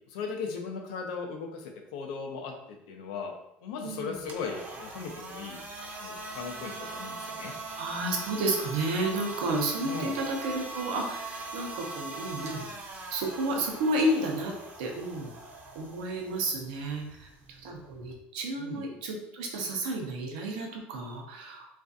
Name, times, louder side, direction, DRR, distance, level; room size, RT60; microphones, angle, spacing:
voice 1, 0.1-3.3 3.6-5.6 6.0-7.5 9.8-10.2 18.6-18.9, left 5 dB, 90° left, 3 dB, 0.5 m, -37 dB
voice 2, 3.8-4.2 7.8-12.6 13.1-14.5 14.8-15.3 15.7-17.3 17.6-21.7, right 1 dB, 90° right, 1 dB, 0.6 m, -31 dB
sound 1, 4.2-18.2, right 3 dB, 45° right, 0.6 m, -41 dB
2.4 x 2.3 x 2.5 m, 0.85 s
supercardioid pair, 115°, 4 cm